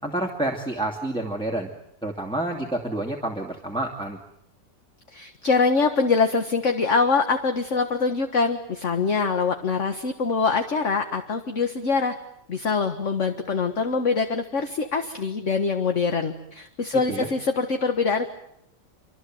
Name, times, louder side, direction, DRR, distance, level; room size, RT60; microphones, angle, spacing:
voice 1, 0.0-1.7 2.0-4.2 17.1-17.3, right 1 dB, 5° left, 0 dB, 2.7 m, -28 dB
voice 2, 5.1-12.2 12.5-18.3, left 4 dB, 45° left, 6 dB, 1.8 m, -24 dB
28.0 x 25.5 x 7.9 m, 0.78 s
omnidirectional pair, 1.8 m